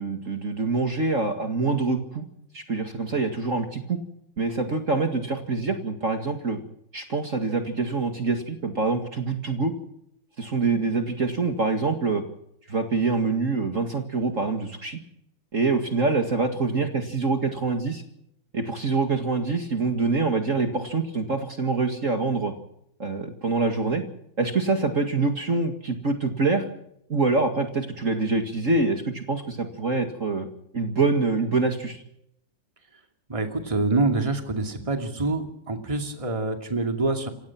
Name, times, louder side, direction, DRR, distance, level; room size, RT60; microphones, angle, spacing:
voice 1, 0.0-2.2 2.5-4.0 4.4-6.6 6.9-9.7 10.4-12.2 12.7-15.0 15.5-18.0 18.5-22.5 23.0-24.0 24.4-26.7 27.1-30.5 30.7-32.0, right 3 dB, 45° right, 5 dB, 2.3 m, -25 dB
voice 2, 33.3-37.3, right 3 dB, 15° right, 5 dB, 2.4 m, -26 dB
28.0 x 16.5 x 6.0 m, 0.73 s
omnidirectional pair, 2.0 m